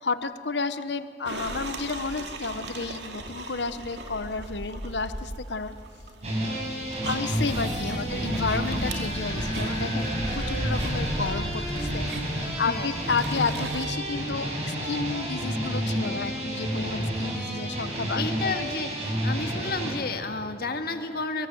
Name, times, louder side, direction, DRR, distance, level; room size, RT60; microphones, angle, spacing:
voice 1, 0.0-5.8 7.1-18.3, left 4 dB, 85° left, 12 dB, 1.0 m, -31 dB
sound 1, 1.3-13.9, right 2 dB, 85° right, 2.5 m, -38 dB
sound 2, 6.2-19.9, right 1 dB, 40° right, 6.5 m, -30 dB
sound 3, 7.4-15.5, left 1 dB, 30° left, 1.8 m, -37 dB
voice 2, 12.7-13.0 18.1-18.9 19.2-21.5, left 3 dB, 60° left, 6 dB, 1.9 m, -31 dB
23.0 x 23.0 x 7.8 m, 2.2 s
head